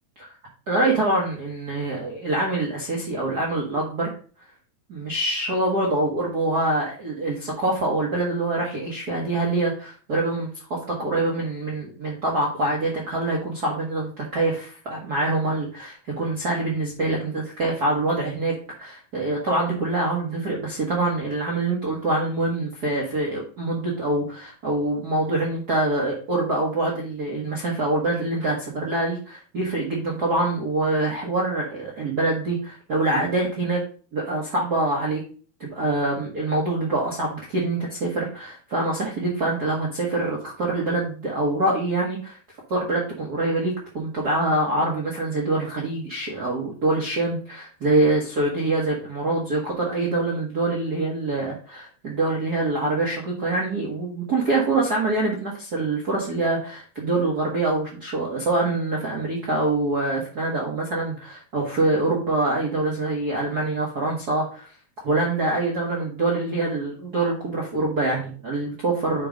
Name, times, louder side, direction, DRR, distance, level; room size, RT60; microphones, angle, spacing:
voice 1, 0.7-4.1 4.9-33.8 34.1-35.2 35.6-42.4 42.7-64.7 65.0-69.3, right 2 dB, 50° right, -3 dB, 1.2 m, -25 dB
8.7 x 3.1 x 5.1 m, 0.39 s
omnidirectional pair, 3.7 m